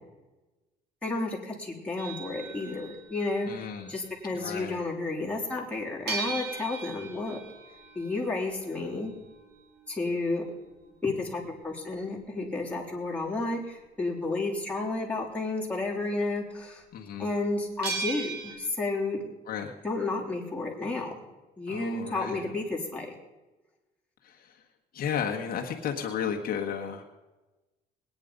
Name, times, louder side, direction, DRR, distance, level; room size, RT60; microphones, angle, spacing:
voice 1, 1.0-7.4 8.0-9.1 9.9-10.4 11.0-16.8 17.2-19.3 19.8-21.1 21.6-23.1, left 2 dB, 5° left, -3 dB, 3.6 m, -31 dB
sound 1, 2.0-4.2 6.1-12.7 17.8-18.6, right 4 dB, 70° right, 3.0 m, -39 dB
voice 2, 3.5-3.9 4.3-4.8 16.9-17.3 19.5-19.8 21.7-22.4 24.2-24.6 24.9-27.0, left 7 dB, 60° left, 1 dB, 1.6 m, -33 dB
20.0 x 9.7 x 5.3 m, 1.1 s
cardioid pair, 110°, 17 cm